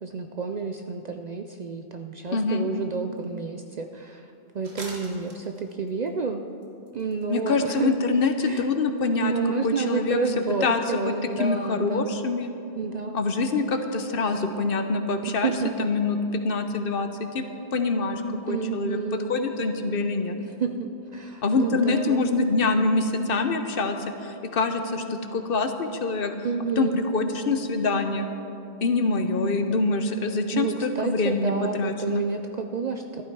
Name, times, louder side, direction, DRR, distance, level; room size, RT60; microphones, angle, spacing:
voice 1, 0.0-4.3 4.5-6.4 6.9-7.9 8.4-8.7 9.2-12.1 12.7-13.4 15.2-15.9 18.5-19.4 20.4-22.2 26.4-27.0 30.5-33.2, right 5 dB, 50° right, 6 dB, 0.5 m, -30 dB
voice 2, 2.3-2.7 7.3-9.3 9.6-10.2 10.6-11.1 11.4-12.5 13.1-15.5 15.8-17.4 17.7-19.0 19.3-20.4 21.4-24.0 24.2-26.3 26.8-28.3 28.8-32.2, left 3 dB, 60° left, 7 dB, 0.9 m, -25 dB
sound 1, 3.2-3.3 3.7-3.8 4.6-6.1 6.6-7.7 7.9-8.0 8.3-8.6 8.8-8.9 9.2-9.3, right 2 dB, 70° right, 1.9 m, -43 dB
14.0 x 12.0 x 4.6 m, 2.8 s
omnidirectional pair, 1.1 m